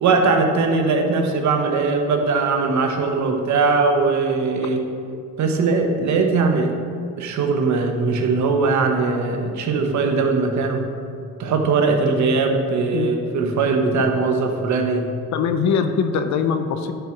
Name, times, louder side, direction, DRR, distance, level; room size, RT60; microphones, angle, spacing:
voice 1, 0.0-4.8 5.4-6.7 7.2-10.9 11.4-15.1, right 4 dB, 70° right, 4 dB, 1.2 m, -20 dB
voice 2, 15.3-16.9, left 6 dB, 70° left, 8 dB, 0.7 m, -21 dB
10.0 x 4.7 x 5.9 m, 2.3 s
cardioid pair, 90°, 30 cm